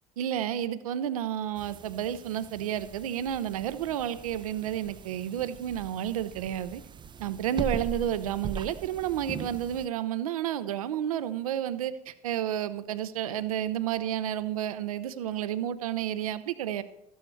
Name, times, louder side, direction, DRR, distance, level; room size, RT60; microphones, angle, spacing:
voice 1, 0.2-6.8 7.2-16.8, right 10 dB, 70° right, 14 dB, 0.6 m, -31 dB
sound 1, 1.6-9.9, right 5 dB, 25° right, 0.5 m, -41 dB
13.5 x 9.2 x 4.5 m, 0.81 s
figure-of-eight pair, 60°, 19 cm